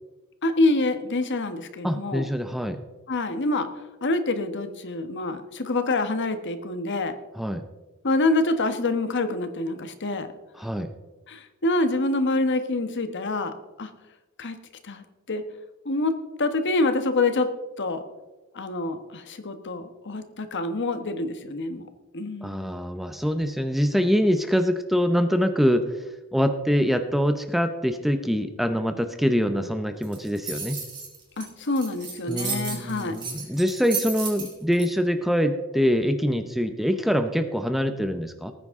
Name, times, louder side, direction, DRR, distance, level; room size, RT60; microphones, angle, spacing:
voice 1, 0.4-2.3 3.1-3.7 4.0-7.1 8.0-10.3 11.3-13.9 14.4-14.6 14.8-15.4 15.8-17.5 17.8-18.0 18.5-21.9 22.1-22.7 31.4-33.2, left 2 dB, 55° left, 9 dB, 1.2 m, -26 dB
voice 2, 1.8-2.8 7.4-7.6 10.6-10.9 22.4-25.9 26.3-30.8 32.3-38.5, equal, ahead, 8 dB, 0.7 m, -24 dB
sound 1, 30.0-34.8, right 5 dB, 20° right, 3.8 m, -33 dB
19.0 x 9.6 x 3.7 m, 1.1 s
head